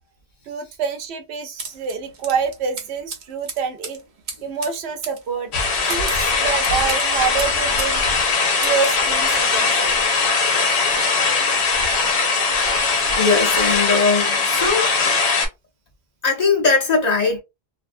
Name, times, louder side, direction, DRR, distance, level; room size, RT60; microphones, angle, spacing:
voice 1, 0.5-4.0 4.4-8.1 8.6-10.0, right 6 dB, 85° right, 0.9 m, -26 dB
sound 1, 1.6-8.0 8.2-9.0, right 4 dB, 55° right, 0.7 m, -36 dB
sound 2, 5.5-15.5, left 4 dB, 85° left, 1.0 m, -20 dB
voice 2, 13.2-14.9 16.2-17.4, left 4 dB, 45° left, 0.7 m, -19 dB
2.5 x 2.0 x 2.5 m
omnidirectional pair, 1.1 m